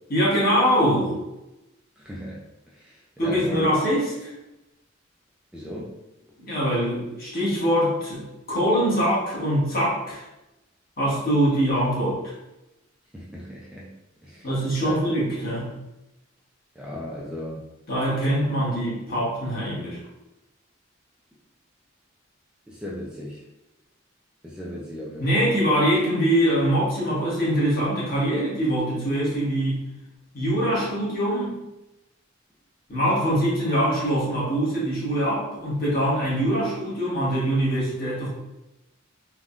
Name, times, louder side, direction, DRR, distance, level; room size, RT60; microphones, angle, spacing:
voice 1, 0.1-1.1 3.2-4.3 6.4-10.2 11.0-12.3 14.4-15.7 17.9-20.0 25.2-29.8 30.3-31.6 32.9-38.3, equal, 50° left, -7 dB, 1.2 m, -23 dB
voice 2, 2.0-2.4 2.8-3.7 5.5-5.9 13.1-13.9 14.2-14.5 14.8-14.9 16.8-17.6 22.7-23.4 24.4-25.4, equal, 5° right, -5 dB, 0.4 m, -36 dB
3.5 x 2.2 x 2.4 m, 0.94 s
head